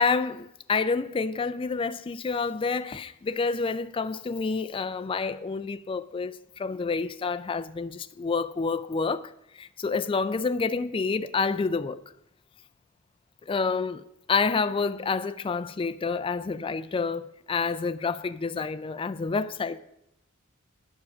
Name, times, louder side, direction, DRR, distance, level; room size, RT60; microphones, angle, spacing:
voice 1, 0.0-12.0 13.4-19.8, left 4 dB, 25° left, 0.3 m, -28 dB
9.7 x 7.2 x 6.1 m
head